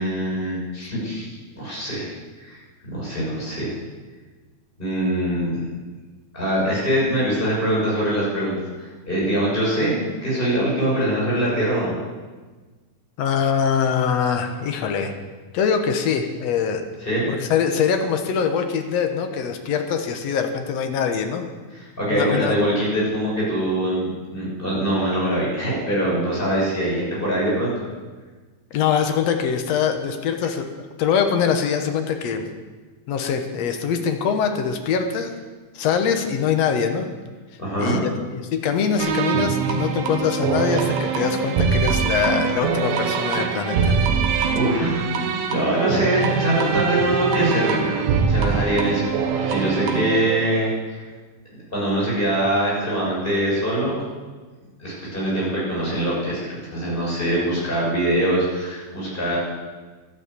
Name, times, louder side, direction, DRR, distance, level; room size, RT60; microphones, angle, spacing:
voice 1, 0.0-2.1 2.4-2.6 2.8-3.7 4.8-5.6 6.3-12.0 17.0-17.3 21.7-27.7 37.6-38.1 44.5-49.0 49.3-51.0 51.7-54.0 54.8-59.4, right 1 dB, 10° left, -6 dB, 6.9 m, -23 dB
voice 2, 13.2-15.1 15.5-16.8 17.3-21.5 22.1-22.5 28.7-30.7 31.0-32.5 33.1-35.3 35.7-37.1 37.8-44.0, left 7 dB, 65° left, 5 dB, 1.7 m, -23 dB
sound 1, 39.0-50.5, right 6 dB, 80° right, 3.2 m, -23 dB
12.0 x 12.0 x 8.4 m, 1.3 s
omnidirectional pair, 4.5 m